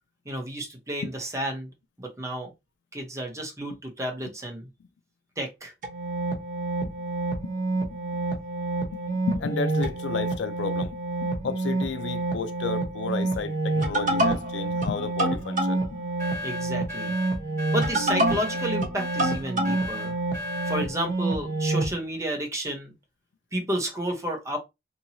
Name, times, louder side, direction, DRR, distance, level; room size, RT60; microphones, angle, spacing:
voice 1, 0.2-1.7 2.0-2.5 2.9-4.7 5.4-5.7 16.4-17.1 17.7-20.2 20.7-22.9 23.5-24.6, right 1 dB, 15° right, 0.8 m, -31 dB
sound 1, 5.8-21.9, right 2 dB, 50° right, 1.0 m, -27 dB
voice 2, 9.3-11.0 11.4-16.0, left 4 dB, 90° left, 0.4 m, -32 dB
sound 2, 16.2-20.9, left 2 dB, 15° left, 1.4 m, -36 dB
2.8 x 2.7 x 2.7 m
head